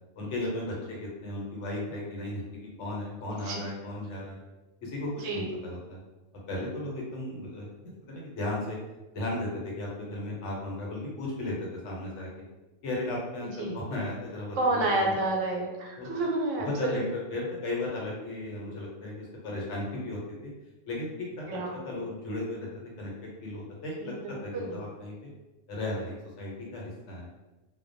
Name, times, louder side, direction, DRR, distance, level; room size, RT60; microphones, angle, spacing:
voice 1, 0.2-4.4 4.8-6.0 6.5-8.8 9.1-11.5 11.8-12.4 12.8-15.1 16.0-16.2 16.6-20.5 20.9-21.6 21.8-22.7 23.0-25.3 25.7-27.3, left 1 dB, 75° left, -3 dB, 1.0 m, -35 dB
voice 2, 3.2-3.6 5.2-5.5 13.6-13.7 14.6-16.7 21.5-21.8 24.0-24.8, right 2 dB, 85° right, 0 dB, 1.0 m, -30 dB
2.2 x 2.2 x 2.5 m, 1.1 s
omnidirectional pair, 1.3 m